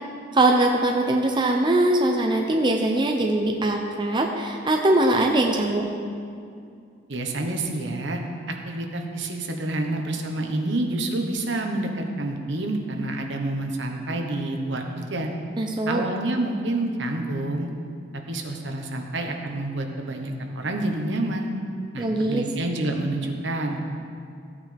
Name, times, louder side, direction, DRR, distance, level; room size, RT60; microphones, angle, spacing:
voice 1, 0.3-5.9 15.6-16.0 22.0-22.5, right 1 dB, 25° right, 2 dB, 0.6 m, -21 dB
voice 2, 7.1-8.2 8.5-15.3 15.9-17.7 18.3-21.5 21.9-23.8, right 2 dB, 65° right, 3 dB, 1.1 m, -28 dB
14.5 x 8.7 x 3.4 m, 2.4 s
head